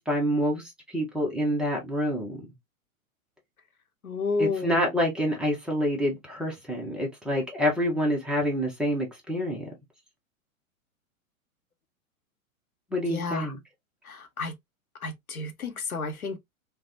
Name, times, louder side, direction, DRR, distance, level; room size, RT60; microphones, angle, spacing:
voice 1, 0.0-2.4 4.4-9.7 12.9-13.6, equal, ahead, 0.4 m, -27 dB
voice 2, 4.0-4.8 7.3-7.4 13.1-13.5 14.0-14.5 15.0-16.4, left 4 dB, 90° left, 0.7 m, -31 dB
3.2 x 2.0 x 2.5 m
figure-of-eight pair, 105°, 42 cm